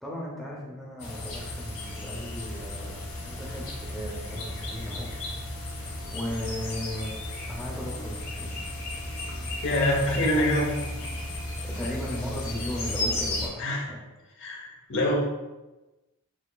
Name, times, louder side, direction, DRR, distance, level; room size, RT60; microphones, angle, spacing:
voice 1, 0.0-5.1 6.1-7.2 7.5-8.6 11.7-14.0 14.6-14.8, equal, ahead, -5 dB, 0.6 m, -36 dB
sound 1, 1.0-13.5, left 1 dB, 80° left, 1.2 m, -34 dB
voice 2, 9.6-10.7 13.6-13.8 14.4-15.2, left 1 dB, 55° left, -1 dB, 0.8 m, -25 dB
6.2 x 2.9 x 2.3 m, 1.1 s
head